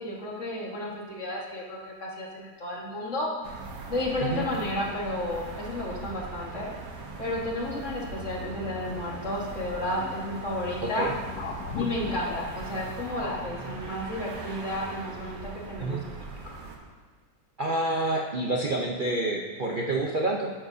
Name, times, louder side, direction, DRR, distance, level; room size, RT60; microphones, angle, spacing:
voice 1, 0.0-3.3 3.9-6.7 7.2-11.1 11.7-16.2, left 1 dB, 45° left, -3 dB, 1.9 m, -32 dB
sound 1, 3.4-16.8, right 3 dB, 85° right, 1.7 m, -40 dB
sound 2, 8.3-13.6, left 4 dB, 85° left, 1.5 m, -40 dB
voice 2, 17.6-20.5, right 2 dB, 45° right, -1 dB, 0.7 m, -28 dB
12.5 x 10.5 x 2.7 m, 1.4 s
omnidirectional pair, 1.8 m